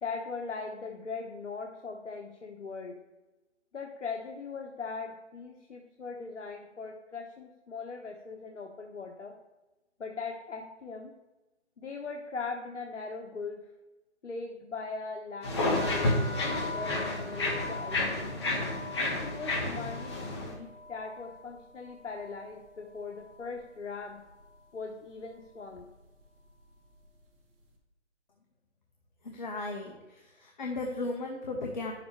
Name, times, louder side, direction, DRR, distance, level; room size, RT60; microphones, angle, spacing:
voice 1, 0.0-3.0 3.7-9.4 10.0-11.1 11.8-13.7 14.2-18.3 19.2-24.2 24.7-25.9, left 4 dB, 80° left, 2 dB, 1.1 m, -40 dB
sound 1, 15.4-20.5, left 2 dB, 25° left, 1.3 m, -31 dB
sound 2, 15.8-23.6 23.9-24.6 25.2-25.5 25.7-27.2, left 3 dB, 50° right, 2.3 m, -44 dB
voice 2, 29.2-29.9 30.4-31.9, left 2 dB, 40° left, 1 dB, 1.0 m, -35 dB
10.5 x 7.1 x 3.3 m, 1.1 s
hypercardioid pair, 165°, 36 cm